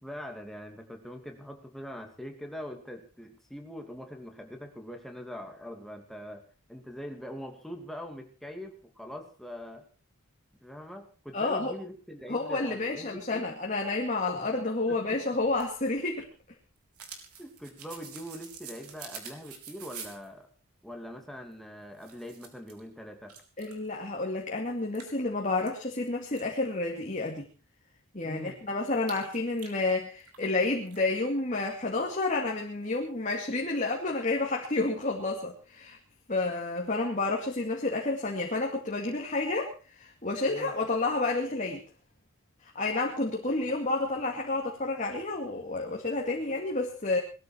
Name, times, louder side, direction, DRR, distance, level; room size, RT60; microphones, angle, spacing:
voice 1, 0.0-6.4 6.7-9.8 10.6-13.6 14.3-14.5 14.9-15.2 17.4-20.5 20.8-23.3 28.2-28.6 40.5-40.7, equal, ahead, 3 dB, 2.6 m, -43 dB
voice 2, 11.3-11.7 12.3-16.3 23.6-27.5 28.1-36.0 36.3-41.8 42.6-47.2, left 2 dB, 35° left, 0 dB, 2.3 m, -30 dB
sound 1, 15.4-20.3 21.5-21.6 21.9-22.8 23.3-23.9 24.3-24.4 24.9-26.4 29.0-30.5 30.8-31.0, right 6 dB, 90° right, 4.2 m, -47 dB
20.5 x 14.0 x 4.6 m, 0.37 s
head